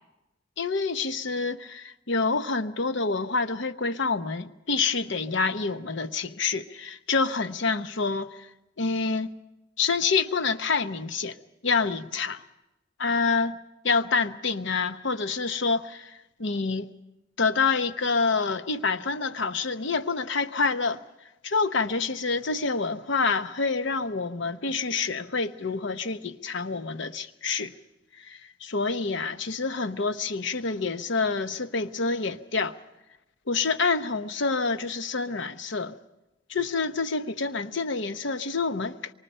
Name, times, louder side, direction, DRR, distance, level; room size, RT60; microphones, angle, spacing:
voice 1, 0.6-8.5 8.8-9.3 9.8-11.4 11.6-12.4 13.0-13.6 13.8-16.9 17.4-21.0 21.4-27.7 28.2-32.8 33.5-35.9 36.5-39.1, left 4 dB, 65° left, 0.9 m, -27 dB
26.0 x 24.0 x 5.6 m
head